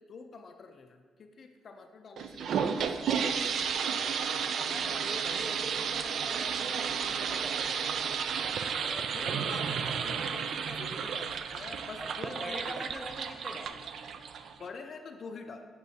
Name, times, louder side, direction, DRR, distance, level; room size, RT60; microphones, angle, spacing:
voice 1, 0.0-3.6 8.7-12.9 14.6-15.7, left 4 dB, 50° left, 5 dB, 0.4 m, -46 dB
sound 1, 2.2-14.7, right 6 dB, 65° right, 0.3 m, -32 dB
voice 2, 3.9-8.1 12.0-13.8, right 1 dB, 10° right, 3 dB, 0.7 m, -43 dB
8.0 x 5.2 x 2.7 m, 1.5 s
cardioid pair, 90°, 0 cm